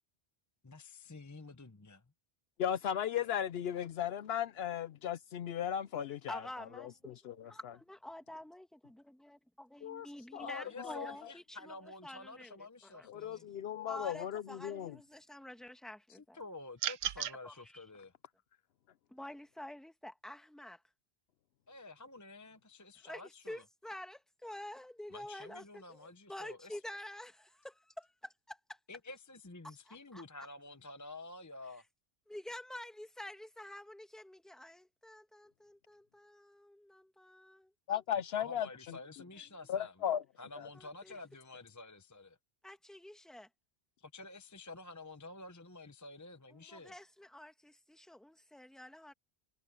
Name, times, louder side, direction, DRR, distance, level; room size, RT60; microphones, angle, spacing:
voice 1, 0.6-2.0 10.4-13.5 16.1-18.1 21.7-23.6 25.1-26.8 28.9-31.8 38.1-39.9 40.4-42.4 44.0-46.9, left 2 dB, 20° left, 0.8 m, -50 dB
voice 2, 2.6-6.4 6.8-7.3 7.6-7.7 9.8-10.1 10.3-11.1 13.1-14.9 37.9-38.7 39.7-40.2 40.6-40.7, left 9 dB, 70° left, 0.8 m, -36 dB
voice 3, 5.9-7.3 7.9-9.1 9.7-11.8 12.0-13.1 13.9-16.4 17.2-17.5 19.1-20.8 23.0-28.8 29.6-30.2 32.3-37.7 40.7-41.2 42.6-43.5 46.5-49.1, left 1 dB, ahead, 1.4 m, -49 dB
sound 1, 16.8-17.4, right 10 dB, 75° right, 0.9 m, -35 dB
omnidirectional pair, 1.1 m